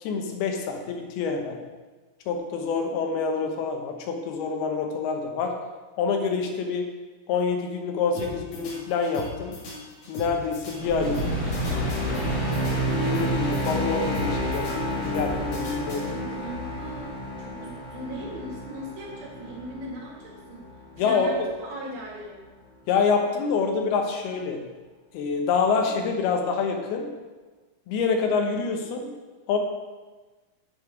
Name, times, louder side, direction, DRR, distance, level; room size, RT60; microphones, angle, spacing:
voice 1, 0.0-1.6 2.3-5.5 6.0-6.9 7.3-9.5 10.1-11.3 12.7-16.1 21.0-21.3 22.9-24.6 25.1-27.1 27.9-29.1 29.5-29.6, left 5 dB, 90° left, 3 dB, 3.0 m, -26 dB
sound 1, 8.1-16.5, equal, 60° left, 3.5 m, -39 dB
sound 2, 10.8-21.2, equal, 35° left, 2.5 m, -30 dB
voice 2, 16.1-17.1 17.4-20.7 21.0-22.4 25.7-25.8, right 1 dB, 75° right, -3 dB, 3.7 m, -38 dB
8.8 x 6.9 x 4.9 m, 1.3 s
omnidirectional pair, 4.3 m